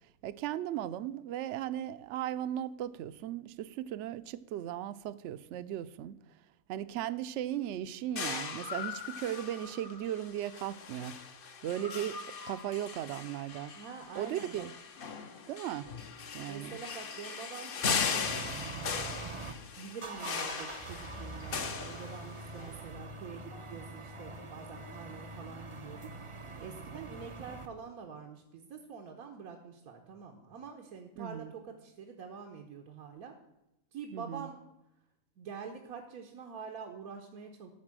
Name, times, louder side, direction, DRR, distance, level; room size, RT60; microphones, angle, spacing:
voice 1, 0.2-6.2 6.7-11.2 11.6-13.7 14.2-14.7 15.5-15.9 16.3-16.8 31.2-31.5 34.1-34.5, right 11 dB, 65° right, 0.8 m, -37 dB
sound 1, 8.2-22.6, left 6 dB, 50° left, 0.8 m, -38 dB
voice 2, 13.7-14.6 16.5-18.3 19.8-26.1 26.6-33.4 33.9-34.6 35.4-37.7, right 6 dB, 90° right, 1.4 m, -46 dB
sound 2, 18.2-19.5 19.9-27.7, right 3 dB, 30° right, 0.6 m, -44 dB
sound 3, 21.4-26.1, left 1 dB, 85° left, 2.4 m, -59 dB
13.0 x 4.4 x 7.4 m
omnidirectional pair, 1.5 m